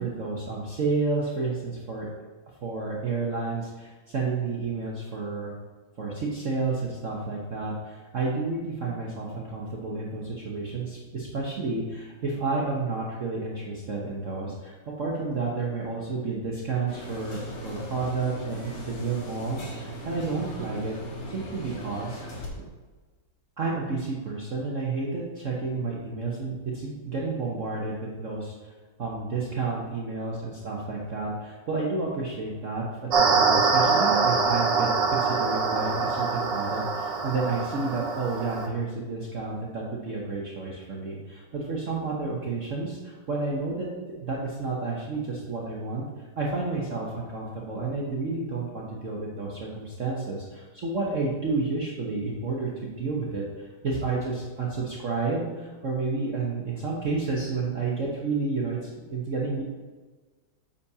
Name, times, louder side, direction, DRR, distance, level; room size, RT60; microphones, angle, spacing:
voice 1, 0.0-2.1 2.6-5.5 6.0-21.0 21.3-22.2 23.6-28.7 29.0-43.9 44.2-46.1 46.4-59.6, right 3 dB, 45° right, -4 dB, 1.2 m, -30 dB
sound 1, 16.9-22.5, equal, 65° left, 2.3 m, -39 dB
sound 2, 33.1-38.7, right 4 dB, 65° right, 1.6 m, -24 dB
10.0 x 7.1 x 2.8 m, 1.3 s
omnidirectional pair, 2.2 m